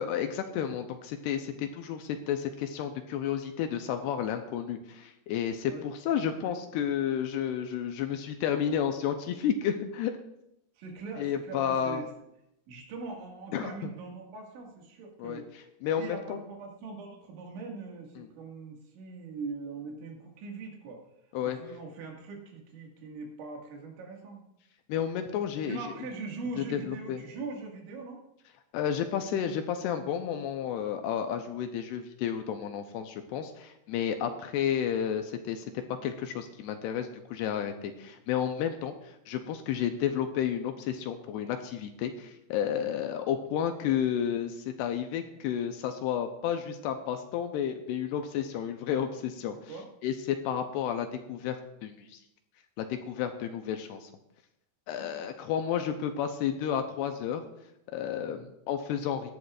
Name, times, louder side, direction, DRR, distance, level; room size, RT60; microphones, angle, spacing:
voice 1, 0.0-10.1 11.2-12.0 13.5-13.7 15.2-15.4 15.8-16.4 18.2-18.3 21.3-21.6 24.9-25.8 26.6-27.2 28.7-49.6 50.0-52.2 52.8-54.1 54.9-57.4 57.9-59.3, left 9 dB, 80° left, 6 dB, 2.5 m, -31 dB
voice 2, 10.8-12.1 12.7-15.5 16.0-21.0 21.4-24.4 25.7-28.2 49.7-49.8 58.3-58.5, right 4 dB, 85° right, 0 dB, 4.4 m, -41 dB
17.5 x 12.0 x 2.5 m, 0.82 s
omnidirectional pair, 5.2 m